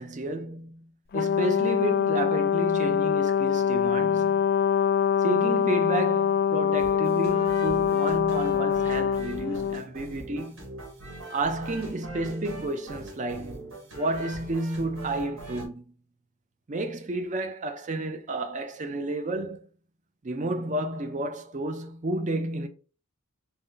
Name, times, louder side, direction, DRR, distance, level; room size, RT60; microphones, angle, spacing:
voice 1, 0.0-4.5 5.2-10.7 11.3-15.9 16.7-19.6 20.2-22.7, right 2 dB, 35° right, 0.6 m, -31 dB
Brass instrument, 1.1-9.8, left 8 dB, 45° left, 0.4 m, -24 dB
sound 1, 6.8-15.7, right 1 dB, 70° right, 1.7 m, -42 dB
4.3 x 2.1 x 3.8 m
head